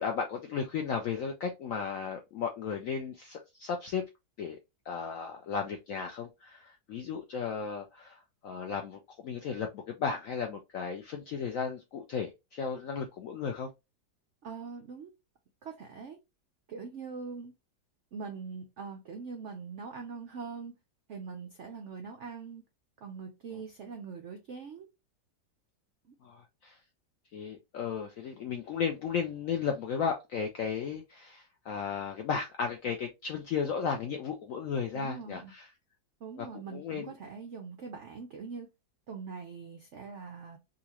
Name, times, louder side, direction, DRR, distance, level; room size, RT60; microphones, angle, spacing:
voice 1, 0.0-4.0 4.4-4.6 4.9-13.7 26.2-26.8 27.3-35.7 36.4-36.5 36.7-37.1, left 6 dB, 75° left, 0.7 m, -35 dB
voice 2, 14.4-15.1 15.6-16.2 16.7-17.5 18.1-20.7 21.1-22.6 23.0-24.9 26.1-26.2 34.9-35.5 36.2-38.7 39.1-40.6, right 5 dB, 85° right, 0.6 m, -42 dB
3.9 x 2.4 x 2.8 m
omnidirectional pair, 2.0 m